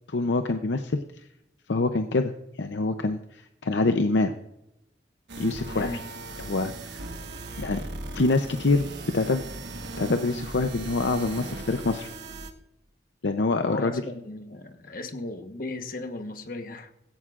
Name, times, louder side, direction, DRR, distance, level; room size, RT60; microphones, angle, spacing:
voice 1, 0.1-1.0 1.7-2.3 2.6-4.3 5.4-5.9 6.4-7.2 7.6-7.8 8.1-8.9 9.1-9.4 10.0-12.1 13.2-13.9, left 3 dB, 80° left, 7 dB, 0.7 m, -25 dB
sound 1, 5.3-12.5, right 2 dB, 75° right, 1.3 m, -38 dB
voice 2, 13.6-16.9, left 2 dB, 50° left, 7 dB, 1.2 m, -36 dB
16.0 x 15.5 x 2.5 m, 0.86 s
head